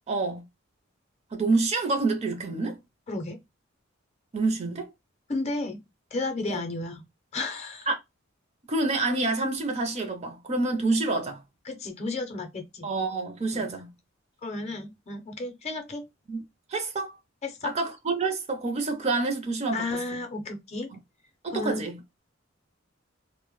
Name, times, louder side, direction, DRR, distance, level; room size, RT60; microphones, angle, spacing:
voice 1, 0.1-0.4 1.3-2.8 4.3-4.9 6.5-6.6 7.9-8.0 8.7-11.4 12.8-13.9 16.3-16.4 16.7-17.2 17.6-20.2 20.9-21.0 21.4-22.0, right 3 dB, 35° right, 0.5 m, -27 dB
voice 2, 3.1-3.4 5.3-5.8 6.1-7.0 7.3-7.9 11.7-12.9 13.5-13.7 14.4-16.0 17.4-17.7 19.7-20.9 21.5-21.8, left 3 dB, 35° left, 0.5 m, -33 dB
2.1 x 2.0 x 3.0 m
head